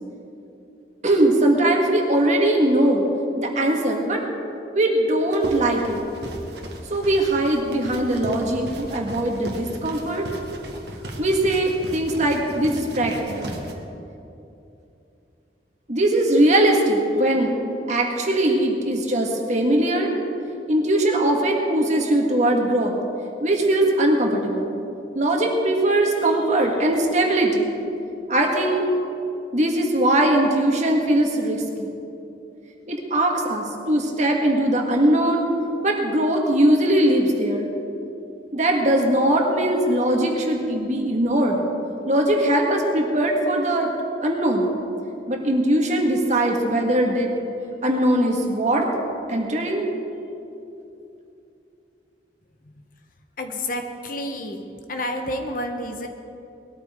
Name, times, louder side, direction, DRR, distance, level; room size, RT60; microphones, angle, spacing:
voice 1, 1.0-3.1 3.4-4.2 4.7-6.0 6.9-10.3 11.2-13.6 15.9-17.6 17.9-20.2 20.7-22.9 23.4-24.7 25.2-27.7 28.3-28.9 29.5-31.6 32.9-35.5 35.8-37.7 38.5-41.6 42.1-43.9 44.2-44.7 45.3-47.3 47.8-48.9 49.3-49.8, right 1 dB, 40° right, 1 dB, 1.8 m, -20 dB
sound 1, 5.3-13.7, right 1 dB, 65° right, 1.6 m, -36 dB
voice 2, 53.4-54.6 54.9-56.1, left 1 dB, 50° left, 4 dB, 1.2 m, -29 dB
20.0 x 13.5 x 3.8 m, 2.8 s
head